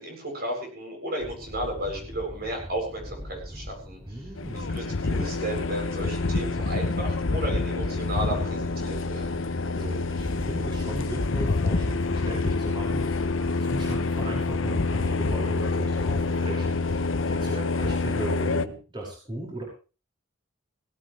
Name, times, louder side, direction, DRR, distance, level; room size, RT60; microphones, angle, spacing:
voice 1, 0.0-4.2 4.7-9.4, right 1 dB, 50° right, 1 dB, 7.7 m, -33 dB
sound 1, 1.2-14.0, equal, ahead, 2.8 m, -41 dB
voice 2, 4.0-4.8 9.7-19.6, right 1 dB, 25° right, -3 dB, 5.7 m, -37 dB
sound 2, 4.4-18.7, left 3 dB, 75° left, 0.8 m, -27 dB
18.0 x 18.0 x 3.3 m, 0.35 s
head